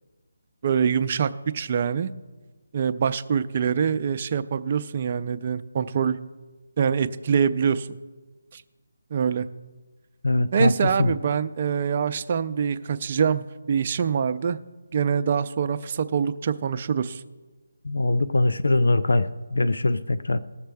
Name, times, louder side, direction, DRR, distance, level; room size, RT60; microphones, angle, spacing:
voice 1, 0.6-2.1 2.7-6.2 6.8-8.0 8.5-8.6 9.1-9.5 10.5-14.6 14.9-17.2, right 7 dB, 35° right, 11 dB, 0.5 m, -24 dB
voice 2, 10.2-10.7 11.0-11.1 17.8-20.4, left 2 dB, 85° left, 13 dB, 0.5 m, -22 dB
19.5 x 6.6 x 3.5 m, 1.3 s
figure-of-eight pair, 165°, 0 cm